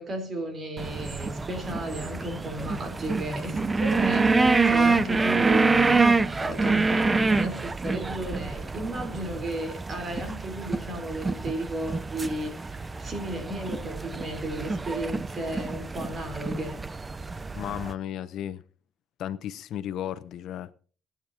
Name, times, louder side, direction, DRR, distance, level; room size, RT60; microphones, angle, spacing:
voice 1, 0.0-16.8, right 1 dB, 45° right, 4.1 m, -34 dB
sound 1, 0.8-17.9, right 3 dB, 25° right, 0.7 m, -26 dB
voice 2, 17.5-18.6 19.2-20.7, left 10 dB, 80° left, 0.9 m, -34 dB
24.0 x 9.0 x 2.9 m
cardioid pair, 90°, 0 cm